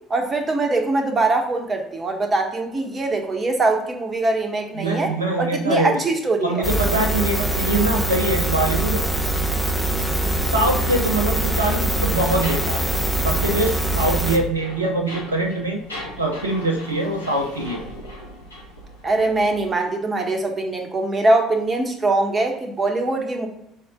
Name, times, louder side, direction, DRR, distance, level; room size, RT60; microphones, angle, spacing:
voice 1, 0.0-5.1 5.4-6.6 19.0-23.5, right 2 dB, 30° right, 4 dB, 1.4 m, -22 dB
voice 2, 4.8-6.0 6.4-9.0 10.5-13.0 13.2-15.8 16.2-17.8, right 1 dB, 85° right, 3 dB, 0.7 m, -23 dB
sound 1, 6.6-14.4, right 2 dB, ahead, 1.1 m, -23 dB
sound 2, 10.7-19.7, left 1 dB, 85° left, 1.3 m, -39 dB
6.4 x 4.4 x 3.7 m, 0.81 s
figure-of-eight pair, 55°, 0 cm